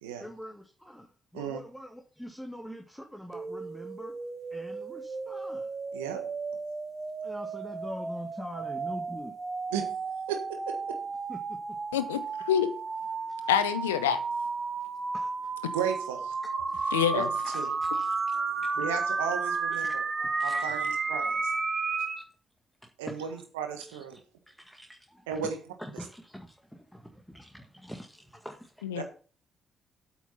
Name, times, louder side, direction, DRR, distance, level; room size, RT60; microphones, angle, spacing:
voice 1, 0.2-4.1 4.5-5.7 7.2-9.4 11.3-11.8 13.2-13.5 15.1-15.8 16.7-17.0 17.3-18.7 19.7-20.9 22.2-22.3 22.8-23.4 23.9-24.2 24.5-25.5 25.8-28.8, equal, ahead, 3 dB, 1.8 m, -44 dB
sound 1, 3.3-22.2, right 4 dB, 40° right, 1.3 m, -33 dB
voice 2, 10.3-11.0 15.7-16.3 17.1-17.2 17.5-17.7 18.8-20.0 20.4-21.5 23.0-24.2 25.3-25.6 29.0-29.1, right 8 dB, 80° right, 6 dB, 1.5 m, -34 dB
voice 3, 11.9-12.7 13.5-14.2 16.9-17.3 28.8-29.0, left 9 dB, 80° left, 12 dB, 0.6 m, -26 dB
8.6 x 7.0 x 5.6 m, 0.39 s
figure-of-eight pair, 40°, 0 cm